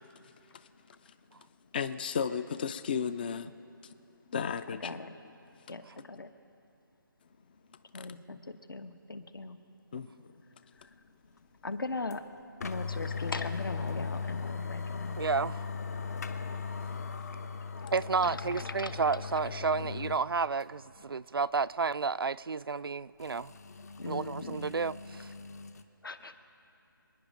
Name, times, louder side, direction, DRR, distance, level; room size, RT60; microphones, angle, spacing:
voice 1, 0.2-0.7 1.0-1.1 1.7-3.5 3.8-3.9 4.3-5.0 7.9-8.1 9.9-10.4, left 6 dB, 25° left, 0.4 m, -35 dB
voice 2, 4.8-5.1 5.7-6.3 7.9-9.6 11.6-12.2 12.6-15.2 18.2-18.3 18.8-18.9 24.0-24.7 26.0-26.3, left 3 dB, 70° left, 1.1 m, -39 dB
sound 1, 12.1-12.2 12.6-20.2 20.6-20.7 23.2-25.8, left 5 dB, 45° left, 0.8 m, -38 dB
voice 3, 15.2-15.7 17.9-23.5 24.1-25.3, right 5 dB, 85° right, 0.4 m, -31 dB
27.0 x 10.0 x 5.2 m
figure-of-eight pair, 155°, 12 cm